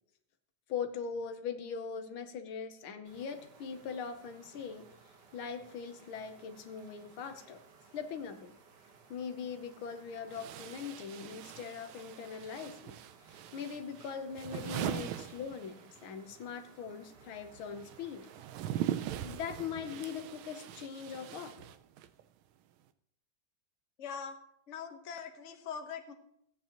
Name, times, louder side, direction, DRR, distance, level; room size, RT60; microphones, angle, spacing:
voice 1, 0.7-4.9 5.3-7.6 7.9-8.6 9.1-12.9 13.5-18.3 19.2-21.6, left 6 dB, 80° left, 7 dB, 1.8 m, -41 dB
sound 1, 3.0-19.1, right 5 dB, 60° right, 1.7 m, -60 dB
sound 2, 9.4-9.5 10.3-16.1 16.4-22.2, right 11 dB, 85° right, 1.4 m, -41 dB
voice 2, 24.0-24.4 24.7-26.1, left 6 dB, 45° left, 5 dB, 1.1 m, -42 dB
16.5 x 8.8 x 2.9 m, 0.72 s
omnidirectional pair, 2.2 m